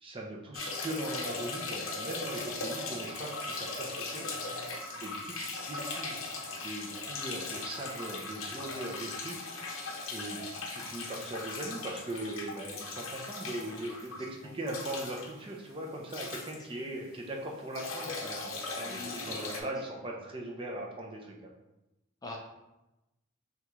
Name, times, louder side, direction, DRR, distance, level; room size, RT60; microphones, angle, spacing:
voice 1, 0.0-4.3 5.0-6.2 6.5-9.8 10.1-10.4 10.7-18.5 18.8-21.5, right 1 dB, 25° right, -1 dB, 0.6 m, -40 dB
sound 1, 0.5-17.2 17.5-19.6, left 3 dB, 70° left, 0.7 m, -39 dB
voice 2, 2.5-3.0 4.3-5.0 13.6-14.5 18.8-19.7 22.2-22.4, left 1 dB, 20° left, 0 dB, 0.4 m, -46 dB
6.1 x 2.4 x 3.1 m, 0.97 s
head